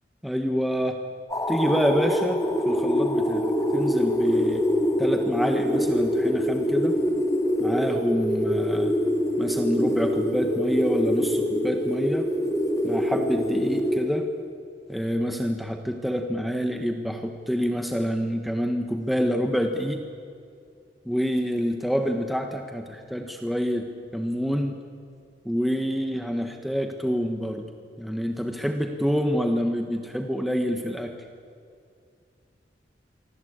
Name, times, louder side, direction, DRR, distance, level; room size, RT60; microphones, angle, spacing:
voice 1, 0.2-1.0 1.5-4.7 5.0-7.0 7.6-9.0 9.4-12.3 12.8-14.3 14.9-20.0 21.0-24.8 25.4-27.7 28.0-31.1, equal, ahead, 4 dB, 1.4 m, -27 dB
sound 1, 1.3-14.5, equal, 20° left, 2.6 m, -25 dB
27.5 x 24.5 x 8.8 m, 2.4 s
head